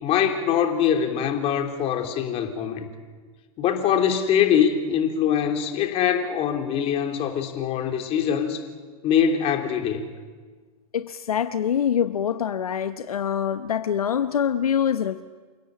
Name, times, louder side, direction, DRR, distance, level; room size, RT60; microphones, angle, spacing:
voice 1, 0.0-2.9 3.6-8.6 9.0-10.0, left 8 dB, 30° left, 4 dB, 3.2 m, -23 dB
voice 2, 10.9-15.2, left 8 dB, 75° left, 11 dB, 0.9 m, -25 dB
28.5 x 17.0 x 8.8 m, 1.4 s
figure-of-eight pair, 110°, 19 cm